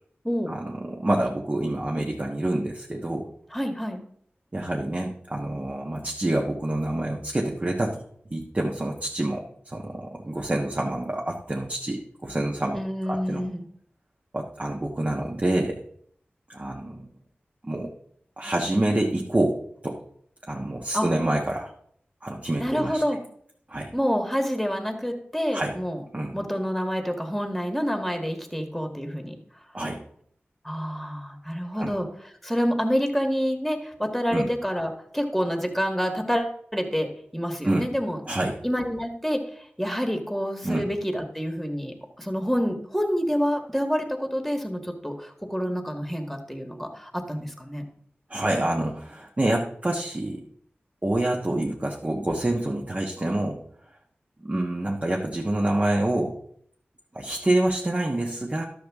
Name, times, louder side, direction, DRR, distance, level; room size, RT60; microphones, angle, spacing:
voice 1, 0.5-3.3 4.5-8.0 8.3-12.8 13.1-13.4 14.3-15.8 16.5-17.1 17.6-17.9 18.4-19.6 19.8-20.0 20.5-21.7 22.2-23.0 23.7-23.9 25.5-25.8 26.1-26.3 29.7-30.0 31.7-31.9 34.3-34.5 37.6-37.9 38.3-38.6 40.6-40.8 48.3-50.4 51.0-53.6 54.4-56.4 57.1-58.6, right 1 dB, 35° right, -1 dB, 1.2 m, -27 dB
voice 2, 3.5-4.0 12.7-13.6 20.9-21.1 22.6-23.2 23.9-26.0 26.3-29.4 30.6-32.1 32.4-38.2 38.6-39.4 39.8-47.8, equal, ahead, 4 dB, 1.6 m, -27 dB
12.0 x 6.7 x 3.6 m, 0.65 s
wide cardioid pair, 60°, 4 cm